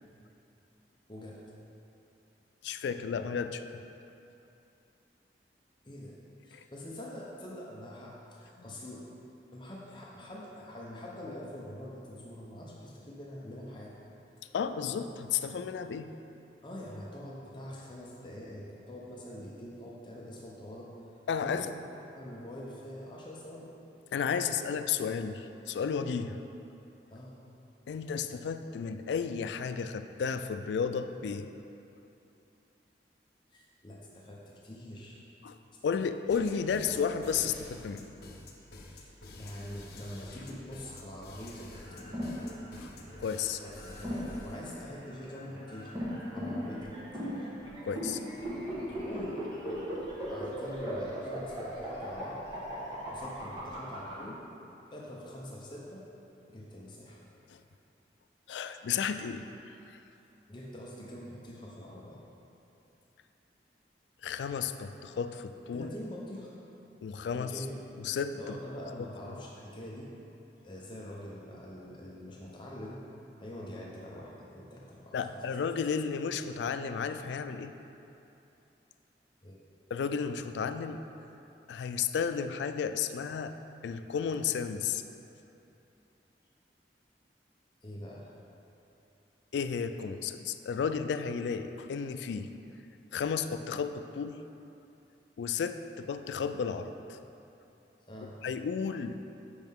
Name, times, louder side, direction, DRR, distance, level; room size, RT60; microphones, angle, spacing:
voice 1, 1.1-1.4 5.8-6.2 6.4-9.1 9.5-14.0 14.4-14.5 16.6-20.9 21.4-21.8 22.1-23.7 24.1-24.6 27.1-27.3 33.5-35.2 38.9-39.1 39.4-42.4 43.6-46.0 46.2-47.3 49.0-49.4 50.3-52.4 53.1-54.4 54.9-56.1 56.5-57.2 60.5-62.2 65.7-66.5 67.3-67.9 68.3-70.1 70.6-73.0 73.4-75.6 79.4-79.6 87.8-88.3 98.0-98.4, left 1 dB, 25° left, -4 dB, 0.7 m, -44 dB
voice 2, 2.6-3.8 6.5-6.6 14.5-16.1 21.3-21.7 24.1-26.4 27.9-31.5 35.4-35.6 35.8-38.1 42.8-42.9 43.2-43.6 47.8-48.2 57.5-57.6 58.5-59.5 59.9-60.0 64.2-65.9 67.0-67.6 68.0-68.4 75.1-77.7 79.9-81.0 81.7-83.5 83.8-85.0 89.5-92.5 93.1-94.4 95.4-97.2 98.4-99.2, left 6 dB, 80° left, 10 dB, 0.3 m, -33 dB
sound 1, 36.3-44.7, left 2 dB, 60° left, 0.8 m, -49 dB
sound 2, 41.7-54.1, equal, 25° right, 1.2 m, -37 dB
8.0 x 5.3 x 3.6 m, 2.8 s
head